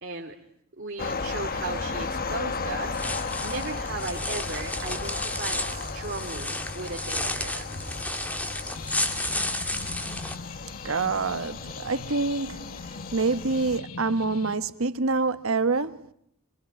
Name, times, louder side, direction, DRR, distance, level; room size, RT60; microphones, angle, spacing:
voice 1, 0.0-0.4 0.8-7.7, right 3 dB, 50° right, 2.8 m, -36 dB
sound 1, 1.0-13.8, left 4 dB, 45° left, 1.3 m, -35 dB
sound 2, 2.9-10.3, left 1 dB, 5° left, 1.9 m, -32 dB
sound 3, 8.7-14.5, left 4 dB, 85° left, 1.2 m, -42 dB
voice 2, 10.8-12.8 13.1-16.1, right 3 dB, 70° right, 1.3 m, -26 dB
24.5 x 24.0 x 9.0 m
head